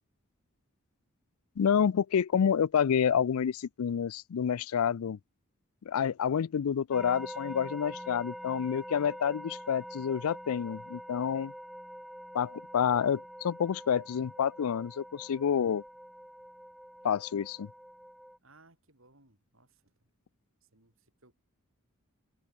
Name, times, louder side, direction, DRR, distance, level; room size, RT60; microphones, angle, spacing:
voice 1, 1.6-5.2 5.9-11.5 12.3-15.8 17.0-17.7, left 7 dB, 90° left, 0.4 m, -28 dB
sound 1, 6.9-18.4, equal, ahead, 0.8 m, -45 dB
voice 2, 18.4-20.1 20.6-21.3, right 2 dB, 70° right, 7.9 m, -63 dB
head